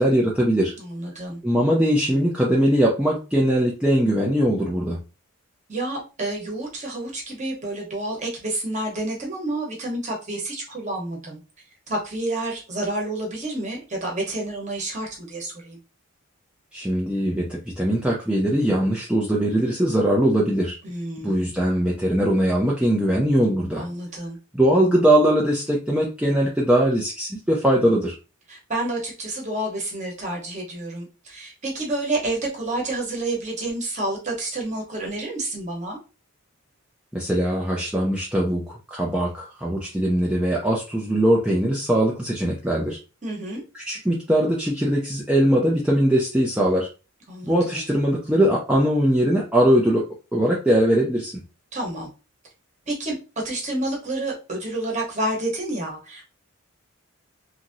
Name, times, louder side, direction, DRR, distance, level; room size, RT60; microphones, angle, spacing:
voice 1, 0.0-0.7 1.4-5.0 16.7-20.8 21.2-23.8 24.5-28.2 37.1-43.0 43.7-46.9 47.4-50.1 50.3-51.4, right 1 dB, 5° right, 0.4 m, -21 dB
voice 2, 0.8-1.4 5.7-11.4 11.9-15.8 20.8-21.4 23.8-24.4 28.5-36.0 43.2-43.6 47.3-47.8 51.7-52.1 52.9-53.2 53.4-56.3, right 2 dB, 35° right, 1.0 m, -29 dB
2.9 x 2.6 x 2.6 m
head